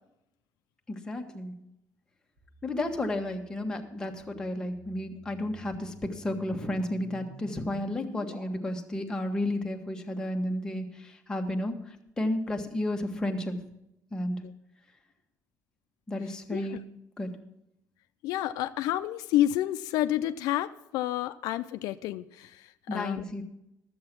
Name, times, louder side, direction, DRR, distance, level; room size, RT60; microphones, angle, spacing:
voice 1, 0.9-1.5 2.6-11.8 12.2-13.6 14.1-14.4 16.1-16.8 17.2-17.3 22.9-23.4, left 1 dB, 10° left, 1.2 m, -32 dB
sound 1, 2.4-8.3, right 2 dB, 90° right, 5.8 m, -49 dB
voice 2, 18.2-22.6 22.9-23.2, left 13 dB, 85° left, 0.4 m, -29 dB
12.5 x 7.9 x 5.9 m
cardioid pair, 145°, 6 cm